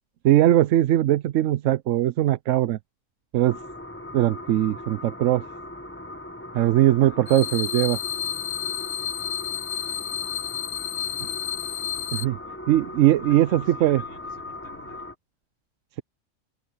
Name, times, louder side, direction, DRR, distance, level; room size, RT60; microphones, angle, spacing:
voice 1, 0.2-2.8 3.3-3.6 4.1-5.4 6.5-8.0 12.1-12.4 12.7-14.0, right 13 dB, 85° right, 1.0 m, -20 dB
sound 1, 3.4-15.1, left 1 dB, 10° left, 1.0 m, -39 dB
voice 2, 6.5-7.7 10.9-12.4 13.0-15.1, right 1 dB, 60° right, 7.8 m, -53 dB
sound 2, 7.3-12.2, left 10 dB, 85° left, 1.1 m, -31 dB
omnidirectional pair, 1.3 m